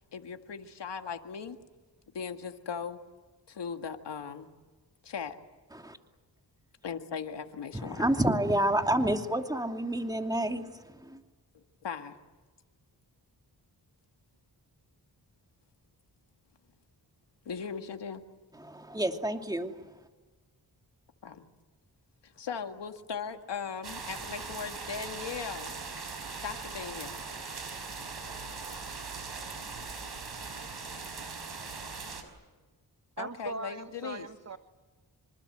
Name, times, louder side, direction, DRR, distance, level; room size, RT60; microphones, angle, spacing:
voice 1, 0.1-1.6 2.1-3.0 3.5-4.5 5.0-5.4 6.8-8.0 11.8-12.2 17.5-18.2 21.2-21.5 22.2-25.8 26.4-27.2 33.2-34.3, left 6 dB, 85° left, 2.0 m, -38 dB
voice 2, 7.7-10.7 10.9-11.2 18.6-19.7, right 1 dB, 10° right, 2.6 m, -29 dB
sound 1, 23.8-32.2, right 4 dB, 70° right, 5.4 m, -40 dB
voice 3, 33.2-34.6, right 3 dB, 40° right, 1.3 m, -39 dB
26.5 x 26.5 x 7.9 m
cardioid pair, 50°, 41 cm